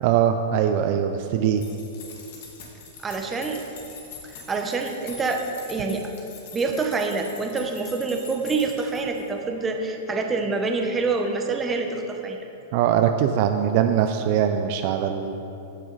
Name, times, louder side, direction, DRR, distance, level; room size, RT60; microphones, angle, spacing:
voice 1, 0.0-1.6 12.7-15.3, right 9 dB, 45° right, 6 dB, 0.5 m, -22 dB
sound 1, 1.6-9.3, left 5 dB, 60° left, 2.1 m, -44 dB
voice 2, 3.0-3.6 4.5-5.4 5.7-6.1 6.5-12.4, right 3 dB, 15° right, 3 dB, 0.9 m, -26 dB
16.0 x 6.1 x 4.0 m, 2.8 s
supercardioid pair, 150°, 0 cm